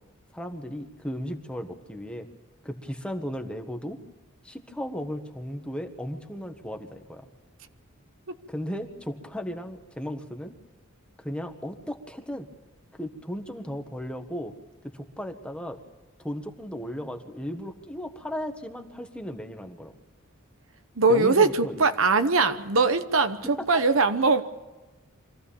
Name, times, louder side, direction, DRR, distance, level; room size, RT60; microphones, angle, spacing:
voice 1, 0.3-2.3 2.6-4.0 4.4-7.3 8.5-10.5 11.2-12.5 13.0-14.5 14.9-15.8 16.2-19.9 21.1-21.9 23.6-23.7, equal, 5° left, 5 dB, 1.4 m, -35 dB
voice 2, 21.0-24.4, right 3 dB, 65° right, 10 dB, 1.0 m, -21 dB
25.0 x 15.0 x 7.1 m, 1.1 s
head